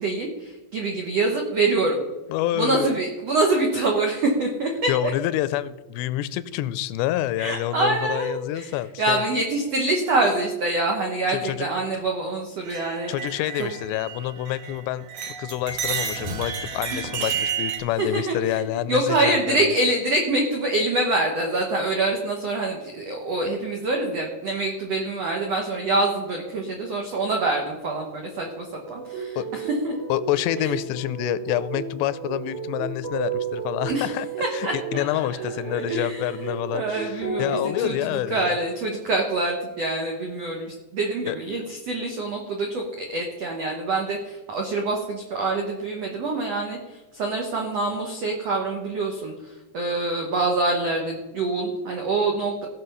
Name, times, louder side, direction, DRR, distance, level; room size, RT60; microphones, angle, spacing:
voice 1, 0.0-2.0 2.5-5.1 7.4-13.1 13.6-13.7 16.9-17.0 18.0-18.6 18.9-29.9 30.6-30.7 33.9-34.1 34.4-36.3 36.7-52.6, right 2 dB, 85° right, 1 dB, 1.4 m, -25 dB
voice 2, 2.3-3.0 4.9-9.2 11.3-11.7 13.1-15.1 15.4-19.6 29.4-29.5 30.1-34.3 34.5-38.6 41.3-41.4, left 14 dB, 85° left, 15 dB, 2.7 m, -27 dB
sound 1, 12.6-14.8 15.1-17.8, right 7 dB, 65° right, 3.2 m, -31 dB
sound 2, 28.9-37.9, right 5 dB, 50° right, 3.9 m, -32 dB
16.5 x 6.2 x 5.5 m, 1.1 s
omnidirectional pair, 4.9 m